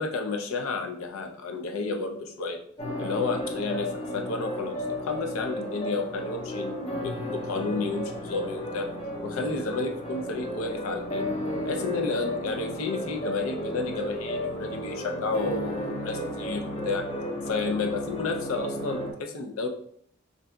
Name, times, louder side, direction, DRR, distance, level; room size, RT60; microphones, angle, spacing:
voice 1, 0.0-2.6 3.0-8.9 9.2-11.3 11.6-17.1 17.5-19.7, left 3 dB, 85° left, 4 dB, 0.5 m, -31 dB
sound 1, 2.8-19.1, left 1 dB, 25° left, 0.5 m, -33 dB
3.6 x 2.6 x 2.2 m, 0.64 s
head